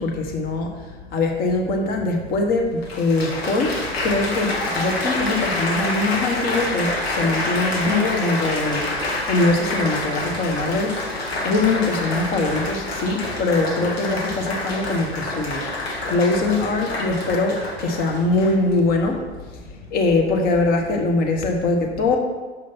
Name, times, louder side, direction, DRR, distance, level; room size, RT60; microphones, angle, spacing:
voice 1, 0.0-15.6 16.0-19.2 19.6-22.2, left 2 dB, 30° left, 2 dB, 1.2 m, -22 dB
Applause, 2.1-2.2 2.8-18.7 19.5-19.8, left 2 dB, 65° left, 1.7 m, -27 dB
6.9 x 5.0 x 4.2 m, 1.3 s
figure-of-eight pair, 105°, 33 cm